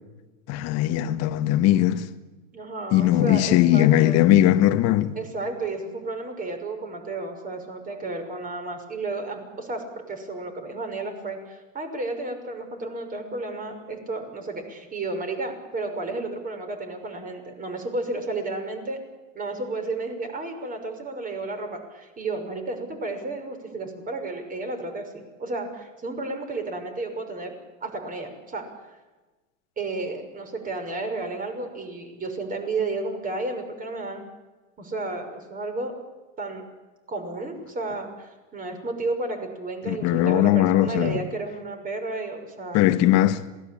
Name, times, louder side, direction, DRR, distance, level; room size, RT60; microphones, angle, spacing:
voice 1, 0.5-2.1 2.9-5.2 39.9-41.2 42.7-43.4, left 13 dB, 40° left, 1.8 m, -19 dB
voice 2, 2.5-4.2 5.2-19.0 19.3-27.5 27.8-28.6 29.8-34.2 34.8-35.9 36.4-36.6 37.1-42.8, right 3 dB, 20° right, 6.2 m, -32 dB
27.0 x 19.5 x 8.8 m
supercardioid pair, 130°, 38 cm